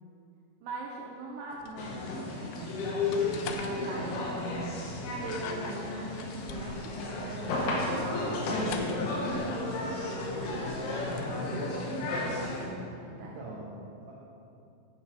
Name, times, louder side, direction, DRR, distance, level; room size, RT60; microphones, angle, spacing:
voice 1, 0.6-2.3 2.5-4.2 5.2-13.4, right 2 dB, 80° right, -2 dB, 2.4 m, -41 dB
sound 1, 1.5-11.3, left 6 dB, 85° left, 2.5 m, -47 dB
sound 2, 1.8-12.7, left 2 dB, 70° left, 2.7 m, -33 dB
voice 2, 7.0-9.0 13.1-14.1, right 2 dB, 65° right, -6 dB, 3.2 m, -42 dB
8.7 x 7.3 x 4.8 m, 2.6 s
omnidirectional pair, 5.7 m